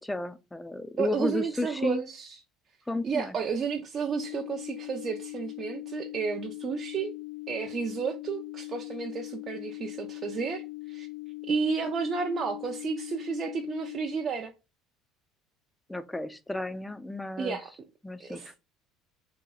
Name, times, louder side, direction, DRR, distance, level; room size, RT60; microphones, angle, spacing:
voice 1, 0.0-2.0 2.9-3.3 15.9-17.6 18.0-18.4, left 2 dB, 10° left, 0.4 m, -32 dB
voice 2, 1.0-2.4 3.0-7.1 7.5-11.1 11.4-14.5 17.4-17.7 18.2-18.6, right 6 dB, 40° right, 0.5 m, -32 dB
sound 1, 4.1-14.1, left 23 dB, 85° left, 0.6 m, -41 dB
2.9 x 2.9 x 3.8 m
supercardioid pair, 95°, 0 cm